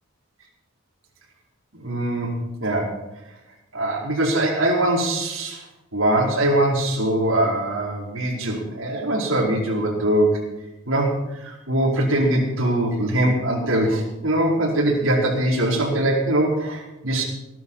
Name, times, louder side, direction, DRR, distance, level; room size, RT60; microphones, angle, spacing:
voice 1, 1.7-3.0 3.7-5.6 5.9-10.4 10.9-17.2, right 1 dB, 75° right, -3 dB, 4.8 m, -22 dB
20.0 x 11.0 x 5.7 m, 0.97 s
head